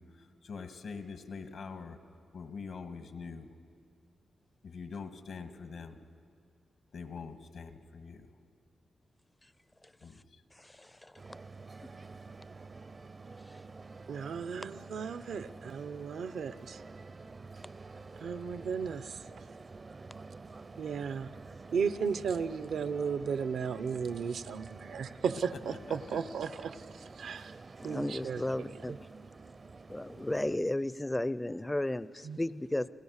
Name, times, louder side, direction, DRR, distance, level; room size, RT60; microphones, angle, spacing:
voice 1, 0.0-3.5 4.6-6.1 6.9-8.3 10.0-10.4 25.5-26.2, left 5 dB, 80° left, 7 dB, 1.6 m, -44 dB
voice 2, 10.6-11.1 27.8-29.0 29.9-32.9, left 1 dB, 15° left, 16 dB, 0.4 m, -34 dB
sound 1, 11.2-30.6, right 3 dB, 40° right, 0.5 m, -49 dB
voice 3, 14.1-16.8 18.2-19.2 20.8-21.3 21.7-26.8 27.2-27.5 27.8-29.0 32.2-32.4, right 6 dB, 85° right, 12 dB, 0.7 m, -35 dB
29.5 x 17.5 x 6.5 m, 2.4 s
cardioid pair, 95°, 0 cm